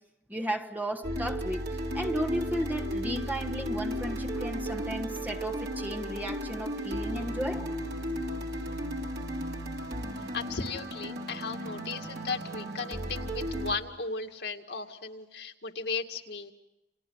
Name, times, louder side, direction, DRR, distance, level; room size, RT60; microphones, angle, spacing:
voice 1, 0.3-1.6 1.9-7.7, equal, 10° right, 1.3 m, -34 dB
sound 1, 1.0-13.7, equal, 65° right, 3.7 m, -34 dB
voice 2, 10.3-16.5, left 4 dB, 75° left, 2.2 m, -36 dB
30.0 x 28.5 x 5.7 m
head